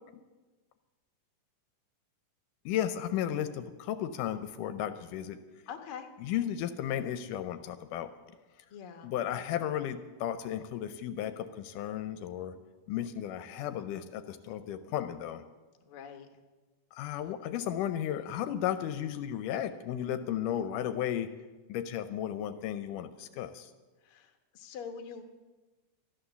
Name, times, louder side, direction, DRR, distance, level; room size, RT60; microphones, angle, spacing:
voice 1, 2.7-5.4 6.2-8.1 9.0-12.5 12.9-15.4 16.9-21.3 21.7-23.7, left 10 dB, 80° left, 10 dB, 2.1 m, -34 dB
voice 2, 5.7-6.1 8.7-9.1 15.8-16.3 24.0-25.2, left 7 dB, 60° left, 6 dB, 1.5 m, -44 dB
13.5 x 11.5 x 6.9 m, 1.2 s
omnidirectional pair, 3.8 m